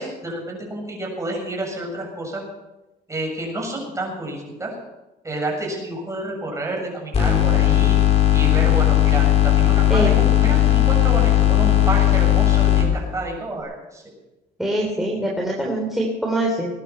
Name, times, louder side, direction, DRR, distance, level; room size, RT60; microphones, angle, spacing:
voice 1, 0.0-2.4 3.1-4.7 5.2-8.0 8.3-14.0, right 1 dB, 20° right, -1 dB, 7.5 m, -29 dB
sound 1, 7.1-12.9, left 12 dB, 40° left, 4.1 m, -16 dB
voice 2, 14.6-16.7, right 1 dB, ahead, -2 dB, 3.5 m, -23 dB
21.0 x 10.5 x 5.8 m, 1.0 s
cardioid pair, 110°, 17 cm